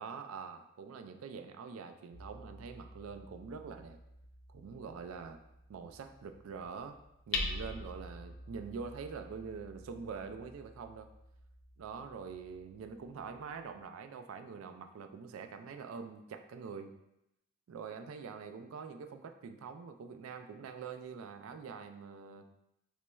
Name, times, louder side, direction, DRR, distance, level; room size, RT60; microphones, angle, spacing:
voice 1, 0.0-4.0 4.5-5.4 5.7-7.0 7.3-11.1 11.8-17.0 17.7-22.5, right 5 dB, 75° right, 8 dB, 0.3 m, -45 dB
Hammer, 2.1-13.8, left 3 dB, 60° left, 0.4 m, -46 dB
4.0 x 3.0 x 2.2 m, 0.85 s
head